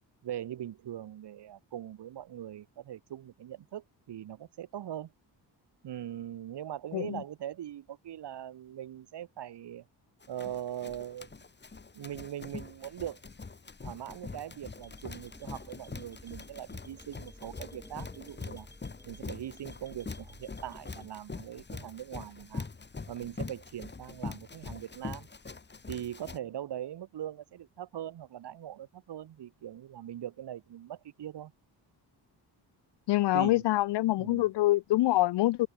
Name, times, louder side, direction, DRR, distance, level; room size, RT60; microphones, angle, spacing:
voice 1, 0.2-5.1 5.8-9.8 10.3-11.3 11.9-13.2 13.8-18.7 19.0-22.7 23.1-25.3 25.9-31.5 33.3-33.6 34.2-34.5, right 11 dB, 75° right, 3.1 m, -41 dB
Run, 10.2-26.4, left 4 dB, 25° left, 3.8 m, -44 dB
sound 1, 14.8-21.1, left 1 dB, 10° left, 3.8 m, -54 dB
voice 2, 33.1-35.7, left 16 dB, 85° left, 0.6 m, -25 dB
open air
cardioid pair, 125°, 41 cm